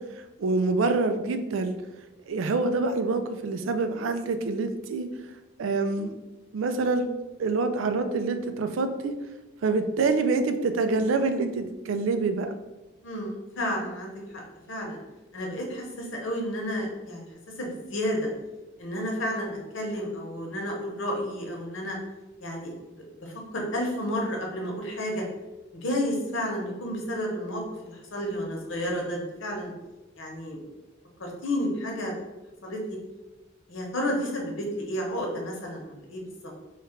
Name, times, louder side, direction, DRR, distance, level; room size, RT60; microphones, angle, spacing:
voice 1, 0.0-1.7 2.3-5.1 5.6-6.2 6.5-7.1 7.4-9.1 9.6-12.5, right 3 dB, 80° right, 8 dB, 0.4 m, -26 dB
voice 2, 13.0-14.4 14.7-15.0 15.3-17.2 17.6-18.2 18.8-22.0 22.4-22.7 23.2-25.2 25.7-29.7 30.2-30.6 31.2-32.1 32.6-33.0 33.7-36.5, equal, 80° left, 0 dB, 0.9 m, -31 dB
3.1 x 2.4 x 4.3 m, 1.1 s
head